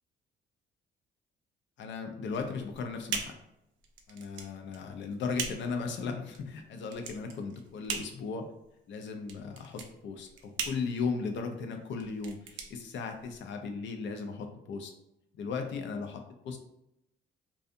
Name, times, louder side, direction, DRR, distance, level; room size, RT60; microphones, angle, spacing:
voice 1, 1.8-3.3 4.1-8.5 8.9-14.9 15.3-16.6, left 5 dB, 70° left, 5 dB, 0.5 m, -36 dB
sound 1, 2.3-13.6, right 6 dB, 70° right, 0.5 m, -41 dB
2.6 x 2.4 x 2.4 m, 0.82 s
cardioid pair, 90°, 20 cm